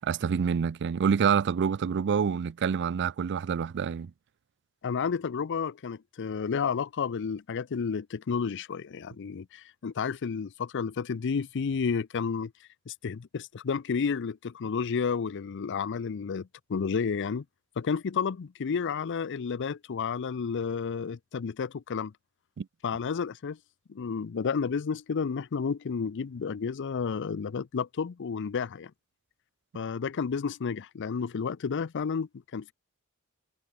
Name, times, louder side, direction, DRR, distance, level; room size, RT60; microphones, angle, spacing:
voice 1, 0.0-4.1 22.6-22.7, right 7 dB, 55° right, 0.4 m, -27 dB
voice 2, 4.8-12.5 12.9-17.4 17.8-22.1 22.8-23.6 23.9-28.9 29.7-32.7, left 6 dB, 55° left, 0.5 m, -31 dB
head